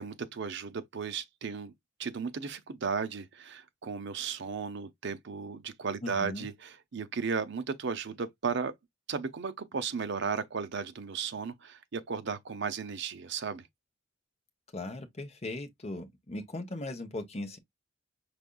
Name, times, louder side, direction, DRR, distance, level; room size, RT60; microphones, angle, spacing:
voice 1, 0.0-1.7 2.0-8.7 9.1-13.6, right 5 dB, 60° right, 0.6 m, -35 dB
voice 2, 6.0-6.5 14.7-17.6, left 2 dB, 30° left, 0.9 m, -38 dB
5.1 x 3.4 x 2.2 m
head